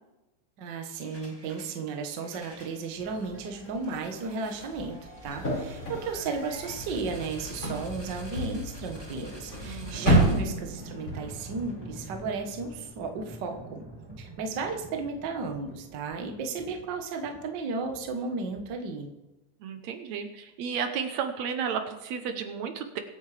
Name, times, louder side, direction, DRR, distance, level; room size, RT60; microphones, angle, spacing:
voice 1, 0.6-13.8 14.2-19.1, right 4 dB, 50° right, 4 dB, 1.3 m, -34 dB
sound 1, 1.0-1.8 2.1-19.0, equal, 10° right, 1.5 m, -45 dB
sound 2, 5.2-11.1, right 1 dB, 25° left, 5.6 m, -30 dB
voice 2, 9.6-10.1 10.4-10.5 19.6-23.0, right 7 dB, 70° right, 7 dB, 2.0 m, -33 dB
23.0 x 8.6 x 3.4 m, 1.0 s
omnidirectional pair, 3.5 m